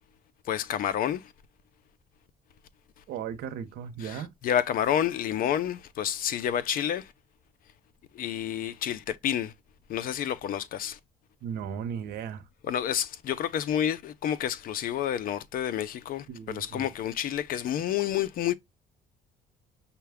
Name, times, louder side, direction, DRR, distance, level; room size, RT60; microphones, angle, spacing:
voice 1, 0.5-1.3 4.0-7.1 8.1-9.5 9.9-11.0 12.6-18.5, left 10 dB, 55° left, 0.5 m, -29 dB
voice 2, 3.1-4.3 11.4-12.4 16.3-16.9, right 8 dB, 75° right, 0.7 m, -36 dB
5.6 x 2.2 x 3.4 m
cardioid pair, 110°, 17 cm